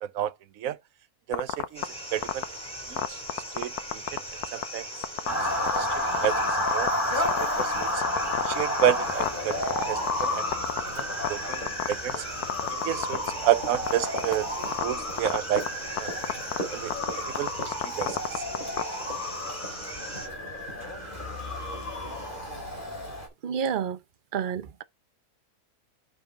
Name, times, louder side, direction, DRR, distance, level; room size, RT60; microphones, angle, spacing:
voice 1, 0.0-0.8 1.3-2.4 2.9-3.2 3.5-4.2 4.5-4.9 5.3-5.5 5.8-5.9 6.2-6.4 6.7-8.0 8.4-9.6 9.9-10.4 11.0-11.6 11.9-12.2 12.7-14.5 14.8-15.6 16.0-16.1 16.7-18.4, right 11 dB, 65° right, 1.1 m, -30 dB
sound 1, 1.3-1.8 2.2-2.4 3.0-4.2 4.4-4.6 5.0-5.3 5.7-5.8 6.1-6.9 7.3-10.3 10.5-11.3 11.5-12.2 12.4-13.3 13.7-14.3 14.6-14.8 15.2-15.7 16.0-16.6 16.9-18.8, left 11 dB, 80° left, 1.3 m, -27 dB
sound 2, 1.7-20.3, equal, 5° left, 3.9 m, -40 dB
Motor vehicle (road) / Siren, 5.3-23.3, left 1 dB, 30° left, 3.4 m, -31 dB
voice 2, 23.4-24.0 24.3-24.8, right 7 dB, 50° right, 0.6 m, -29 dB
6.9 x 5.9 x 3.6 m
omnidirectional pair, 1.6 m